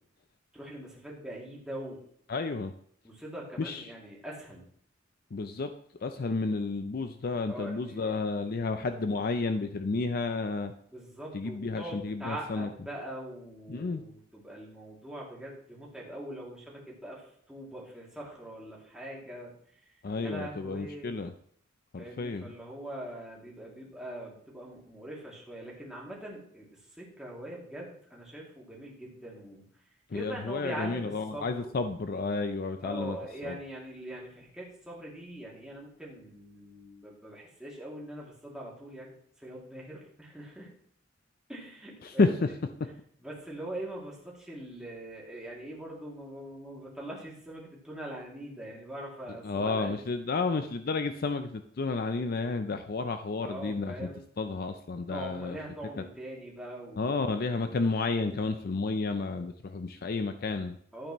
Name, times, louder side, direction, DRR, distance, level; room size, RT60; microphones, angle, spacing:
voice 1, 0.5-2.0 3.0-4.6 7.5-8.2 10.9-19.5 20.1-21.2 22.0-26.7 27.0-29.7 30.1-31.9 32.8-40.7 41.5-42.6 43.2-50.0 53.4-54.2 55.1-57.2 60.9-61.1, right 1 dB, 5° right, -5 dB, 2.5 m, -42 dB
voice 2, 2.3-2.7 3.6-3.8 5.3-5.7 6.0-10.7 11.3-12.7 13.7-14.0 20.0-21.3 21.9-22.4 30.1-33.2 33.4-33.6 42.0-42.5 49.4-54.1 54.4-55.6 56.0-56.1 57.0-60.8, left 3 dB, 50° left, 8 dB, 0.5 m, -31 dB
11.5 x 8.7 x 3.1 m, 0.63 s
head